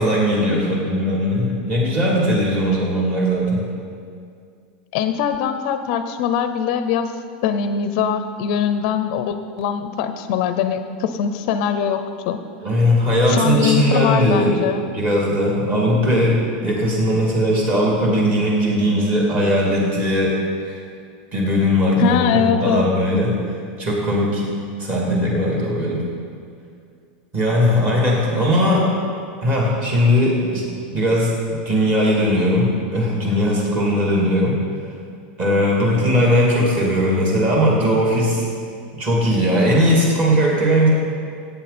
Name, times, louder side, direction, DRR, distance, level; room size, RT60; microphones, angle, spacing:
voice 1, 0.0-3.6 12.6-14.5 14.9-20.8 21.3-23.4 23.8-24.5 24.8-26.0 27.3-29.0 29.4-31.4 31.6-34.6 35.4-38.4 39.0-40.9, equal, 30° right, -3 dB, 2.8 m, -19 dB
voice 2, 4.9-7.1 7.4-12.4 13.3-14.8 22.0-22.9, left 8 dB, 45° left, 9 dB, 0.5 m, -22 dB
17.0 x 8.8 x 4.3 m, 2.3 s
supercardioid pair, 170°, 5 cm